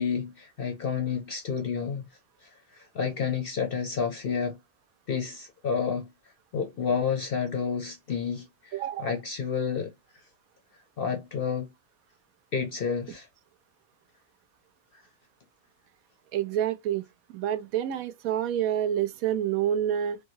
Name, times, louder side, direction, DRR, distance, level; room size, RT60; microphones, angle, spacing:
voice 1, 0.0-2.0 2.4-4.6 5.1-6.1 6.5-9.9 11.0-11.7 12.5-13.3, left 6 dB, 55° left, 0.6 m, -30 dB
voice 2, 8.7-9.1 16.3-17.0 17.3-20.2, right 10 dB, 80° right, 1.0 m, -28 dB
3.3 x 2.3 x 3.0 m
omnidirectional pair, 1.5 m